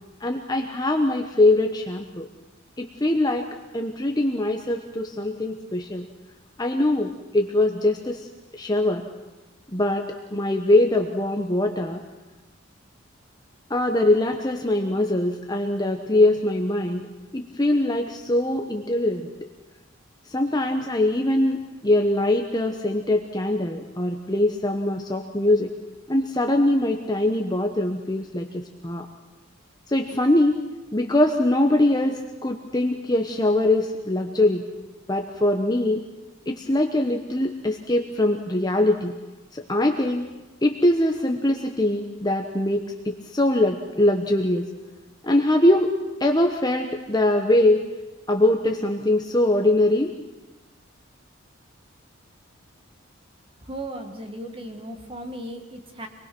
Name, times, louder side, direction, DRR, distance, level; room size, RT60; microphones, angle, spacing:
voice 1, 0.2-2.3 2.8-3.5 3.7-6.0 6.6-8.3 8.5-9.0 9.7-12.0 13.7-17.0 17.3-19.3 20.3-25.7 26.1-29.1 29.9-30.6 30.9-34.7 35.1-36.0 36.5-39.1 39.5-40.2 40.6-44.7 45.2-45.9 46.2-47.8 48.3-50.1, left 1 dB, 20° left, 3 dB, 1.1 m, -22 dB
voice 2, 53.7-56.1, right 1 dB, 25° right, 5 dB, 1.8 m, -36 dB
26.0 x 20.0 x 6.1 m, 1.1 s
head